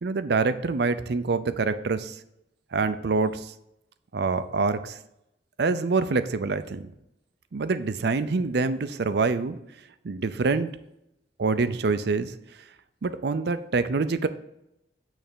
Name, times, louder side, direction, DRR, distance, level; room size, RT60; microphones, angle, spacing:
voice 1, 0.0-2.2 2.7-3.5 4.1-5.0 5.6-6.9 7.5-9.6 10.0-10.7 11.4-12.3 13.0-14.3, right 4 dB, 60° right, 12 dB, 0.5 m, -25 dB
8.9 x 3.4 x 6.7 m, 0.83 s
head